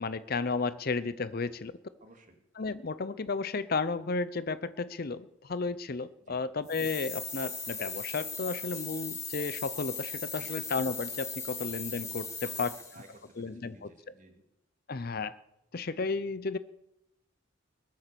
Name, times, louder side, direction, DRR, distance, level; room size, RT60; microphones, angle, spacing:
voice 1, 0.0-1.7 2.6-12.3 12.6-12.7 13.4-13.9 14.9-15.4 15.7-16.6, left 4 dB, 45° left, 16 dB, 0.6 m, -33 dB
voice 2, 2.0-2.4 6.2-6.4 10.4-10.6 12.4-14.4, right 1 dB, 35° right, 5 dB, 2.4 m, -56 dB
sound 1, 6.7-13.1, left 4 dB, 15° left, 2.1 m, -39 dB
21.5 x 8.5 x 6.9 m, 0.84 s
head